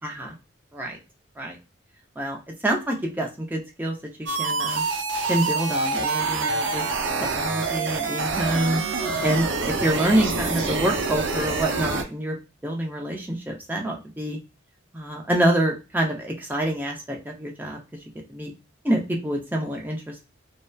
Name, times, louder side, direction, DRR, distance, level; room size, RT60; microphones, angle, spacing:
voice 1, 0.0-0.3 0.7-1.0 1.4-1.6 2.2-4.8 5.3-6.8 7.2-8.8 9.2-12.4 12.6-14.4 14.9-17.8 18.3-18.5 18.8-20.2, right 1 dB, 10° right, 0 dB, 0.5 m, -26 dB
sound 1, 4.3-12.0, right 4 dB, 75° right, 0.5 m, -26 dB
sound 2, 6.8-12.1, right 2 dB, 60° right, 1.1 m, -39 dB
2.8 x 2.1 x 2.2 m, 0.29 s
head